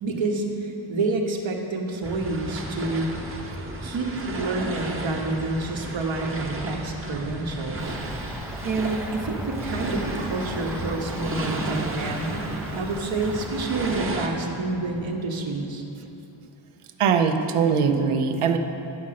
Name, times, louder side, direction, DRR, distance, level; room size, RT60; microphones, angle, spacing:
voice 1, 0.0-3.1 3.8-8.0 8.6-15.8, right 3 dB, 65° right, 2 dB, 1.2 m, -28 dB
sound 1, 2.0-14.3, right 2 dB, 25° right, 0.9 m, -34 dB
sound 2, 7.1-15.2, left 5 dB, 65° left, 0.7 m, -43 dB
Cricket / Motor vehicle (road), 7.8-14.0, equal, 5° right, 0.4 m, -37 dB
voice 2, 17.0-18.6, right 6 dB, 85° right, 7 dB, 0.8 m, -21 dB
10.5 x 6.3 x 5.8 m, 3.0 s
wide cardioid pair, 150°, 50 cm